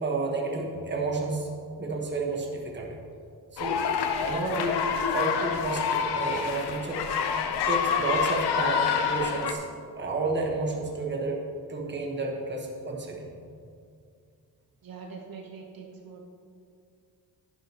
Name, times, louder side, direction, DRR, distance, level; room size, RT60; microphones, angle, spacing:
voice 1, 0.0-1.5 1.8-2.9 3.5-3.8 4.2-7.1 7.5-11.4 11.7-13.3, right 3 dB, 25° right, 0 dB, 1.4 m, -31 dB
sound 1, 3.6-9.5, left 6 dB, 80° left, 0.8 m, -27 dB
voice 2, 14.8-16.2, right 5 dB, 60° right, 1 dB, 1.1 m, -43 dB
11.0 x 11.0 x 3.0 m, 2.3 s
wide cardioid pair, 155°, 39 cm